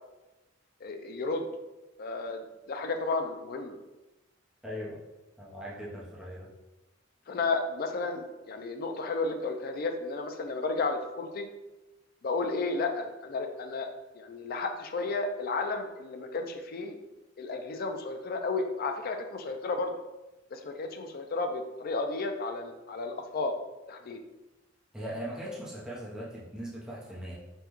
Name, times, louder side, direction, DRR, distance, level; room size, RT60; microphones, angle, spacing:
voice 1, 0.8-1.5 2.0-3.8 7.3-11.5 12.2-13.9 14.1-17.0 17.4-19.9 20.5-23.5 23.9-24.2, left 3 dB, 50° left, 6 dB, 0.4 m, -33 dB
voice 2, 4.6-5.0 5.4-6.5 24.9-27.3, equal, 5° right, -7 dB, 0.8 m, -39 dB
5.3 x 2.3 x 3.0 m, 1.1 s
head